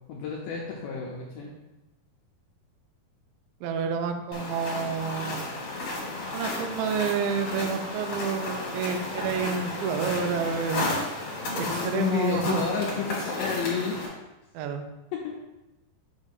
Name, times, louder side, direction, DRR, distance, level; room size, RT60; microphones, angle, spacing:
voice 1, 0.1-1.5 11.5-14.2 15.1-15.3, left 6 dB, 75° left, -3 dB, 2.0 m, -31 dB
voice 2, 3.6-5.5 6.3-10.9 11.5-12.6 14.5-14.9, right 6 dB, 80° right, 6 dB, 2.0 m, -29 dB
sound 1, 4.3-14.1, left 2 dB, 55° left, 2.7 m, -33 dB
8.0 x 2.7 x 5.3 m, 1.0 s
omnidirectional pair, 4.5 m